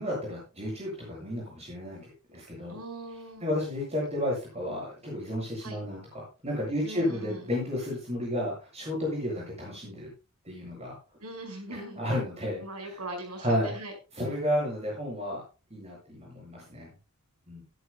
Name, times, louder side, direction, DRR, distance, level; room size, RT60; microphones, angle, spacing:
voice 1, 0.0-2.8 3.4-10.1 10.4-11.0 11.7-12.6 12.9-13.0 13.4-13.7 14.1-15.4 15.7-16.9 17.5-17.6, left 1 dB, 30° right, -3 dB, 7.9 m, -32 dB
voice 2, 2.7-3.4 5.6-5.8 6.8-7.5 11.2-12.0 12.6-13.9, right 1 dB, 85° right, 4 dB, 5.3 m, -40 dB
16.0 x 13.5 x 2.2 m, 0.32 s
head